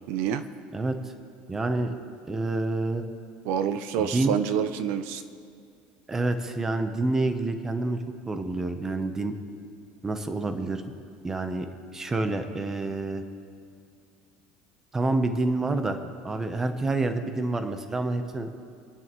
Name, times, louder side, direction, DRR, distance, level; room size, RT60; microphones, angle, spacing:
voice 1, 0.1-0.5 3.4-5.2, right 8 dB, 60° right, 11 dB, 0.6 m, -27 dB
voice 2, 1.5-1.9 2.2-3.0 4.0-4.4 6.1-9.3 10.0-10.8 11.2-11.7 11.9-13.2 14.9-16.0 16.2-18.5, right 2 dB, 10° right, 7 dB, 0.8 m, -28 dB
27.5 x 9.8 x 3.1 m, 2.3 s
cardioid pair, 165°, 4 cm